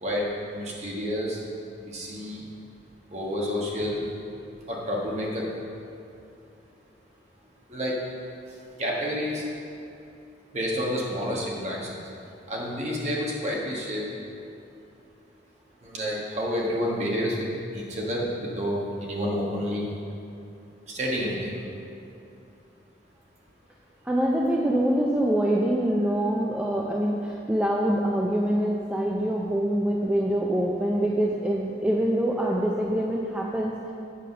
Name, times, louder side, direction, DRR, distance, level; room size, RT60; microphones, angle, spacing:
voice 1, 0.0-1.4 1.8-2.4 3.1-4.0 4.7-5.5 7.7-8.0 8.8-9.4 10.5-12.0 12.5-14.0 15.8-17.5 17.7-19.9 20.9-21.6, equal, 35° right, -3 dB, 1.5 m, -29 dB
voice 2, 24.0-33.9, right 1 dB, 5° right, -2 dB, 0.4 m, -25 dB
8.5 x 5.2 x 6.7 m, 2.6 s
head